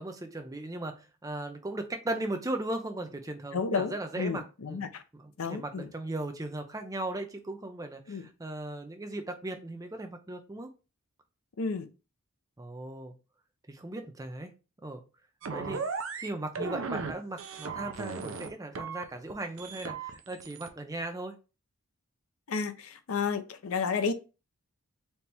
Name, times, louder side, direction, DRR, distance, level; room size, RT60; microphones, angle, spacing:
voice 1, 0.0-4.4 4.7-4.8 5.1-10.7 12.6-13.1 13.7-14.5 14.8-15.0 15.5-15.8 16.2-21.4, right 2 dB, 15° right, 0.5 m, -37 dB
voice 2, 3.5-5.0 5.4-5.9 8.1-8.3 11.6-11.9 22.5-24.1, left 5 dB, 70° left, 0.5 m, -32 dB
sound 1, 15.4-16.3 16.5-17.1 17.4-18.5 18.7-19.3 19.6-20.7, right 4 dB, 60° right, 0.5 m, -36 dB
4.3 x 2.8 x 3.4 m
head